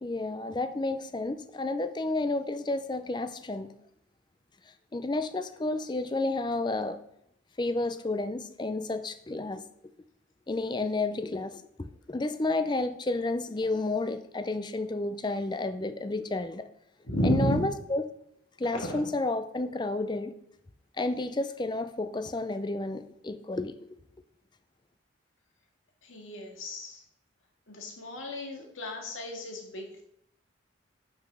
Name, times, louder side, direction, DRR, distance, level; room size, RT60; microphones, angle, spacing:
voice 1, 0.0-3.7 4.9-7.0 7.6-9.6 10.5-16.7 17.2-18.0 18.6-20.3 21.0-24.0, left 2 dB, 20° left, 11 dB, 0.4 m, -31 dB
voice 2, 17.0-17.6 18.7-19.0 26.0-27.0 27.7-30.0, equal, 80° left, 1 dB, 1.9 m, -32 dB
6.4 x 5.8 x 6.2 m, 0.75 s
head